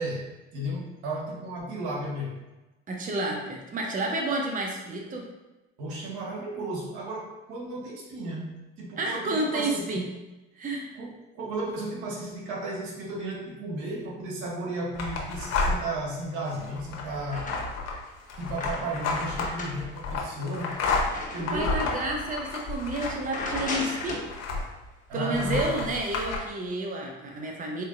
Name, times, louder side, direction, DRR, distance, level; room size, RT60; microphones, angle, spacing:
voice 1, 0.0-2.4 5.8-10.0 10.9-17.5 18.4-20.8 21.3-21.8 25.1-25.9, right 1 dB, 75° right, -2 dB, 1.0 m, -34 dB
voice 2, 2.9-5.3 9.0-10.1 10.6-10.9 21.4-24.3 25.1-27.8, right 2 dB, 25° right, 0 dB, 0.6 m, -30 dB
sound 1, 14.9-16.0 16.5-24.9 25.3-26.4, left 3 dB, 60° left, 0.8 m, -31 dB
sound 2, 16.4-17.9 18.3-21.9 22.4-22.5 22.9-24.3, left 2 dB, 25° left, 1.0 m, -38 dB
4.3 x 2.7 x 2.5 m, 1.1 s
supercardioid pair, 75°, 29 cm